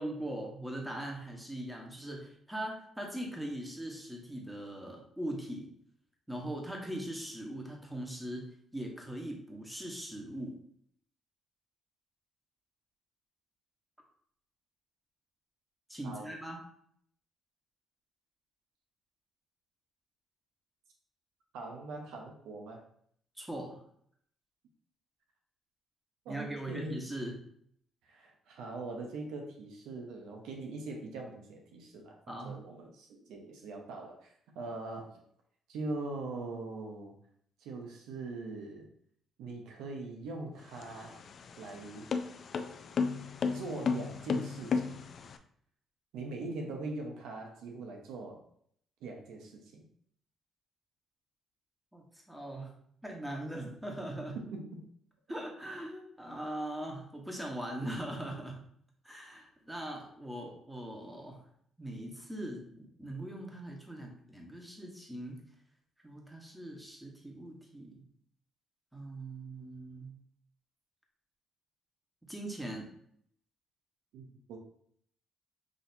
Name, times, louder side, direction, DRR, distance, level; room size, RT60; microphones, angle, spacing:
voice 1, 0.0-5.7 6.3-10.6 15.9-16.6 23.4-23.8 26.3-27.3 32.3-32.6 51.9-52.7 53.0-54.4 55.3-58.6 59.0-61.4 61.8-65.4 66.0-68.0 68.9-70.1 72.3-72.9, right 1 dB, 5° right, 0 dB, 1.2 m, -40 dB
voice 2, 21.5-22.8 26.2-27.0 28.0-35.1 35.7-37.1 37.6-38.9 39.4-41.2 41.6-42.1 43.5-45.0 46.1-48.4 49.0-49.8 54.3-54.8 74.1-74.6, right 2 dB, 90° right, 2 dB, 0.8 m, -42 dB
sound 1, 40.6-45.4, left 5 dB, 55° left, 0.4 m, -34 dB
6.3 x 2.8 x 2.7 m, 0.65 s
cardioid pair, 90°, 0 cm